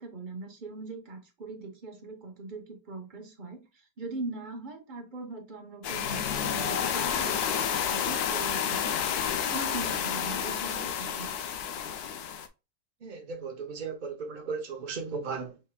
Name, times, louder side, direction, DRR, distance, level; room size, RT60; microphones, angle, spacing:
voice 1, 0.0-9.0 9.5-11.4, right 3 dB, 35° right, 0.9 m, -41 dB
sound 1, 5.8-12.5, left 8 dB, 70° left, 1.0 m, -30 dB
voice 2, 13.0-15.6, right 5 dB, 90° right, 0.4 m, -36 dB
5.6 x 3.5 x 2.2 m
omnidirectional pair, 1.9 m